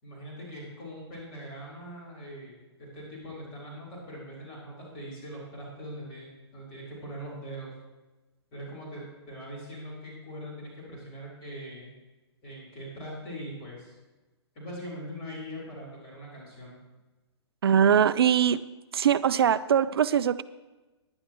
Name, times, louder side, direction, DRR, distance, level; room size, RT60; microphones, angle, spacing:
voice 1, 0.0-7.7 8.5-11.9 12.4-13.9 14.5-16.8, equal, 35° left, -5 dB, 4.3 m, -41 dB
voice 2, 17.6-18.6 18.9-20.4, right 8 dB, 60° right, 16 dB, 0.4 m, -22 dB
16.0 x 10.5 x 3.1 m, 1.2 s
figure-of-eight pair, 120°, 15 cm